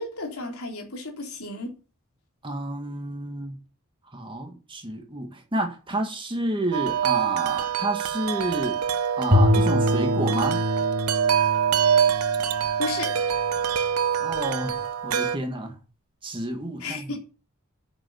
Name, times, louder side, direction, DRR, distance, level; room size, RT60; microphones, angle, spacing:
voice 1, 0.0-1.7 12.8-13.1 16.8-17.2, left 3 dB, 75° left, 3.5 m, -33 dB
voice 2, 2.4-3.5 4.1-8.8 9.2-10.6 14.2-15.8 16.2-17.2, right 1 dB, 25° right, 1.9 m, -30 dB
Wind chime, 6.7-15.4, right 8 dB, 85° right, 0.9 m, -25 dB
Bowed string instrument, 9.3-13.5, left 1 dB, 40° right, 2.2 m, -25 dB
8.7 x 6.9 x 7.1 m
head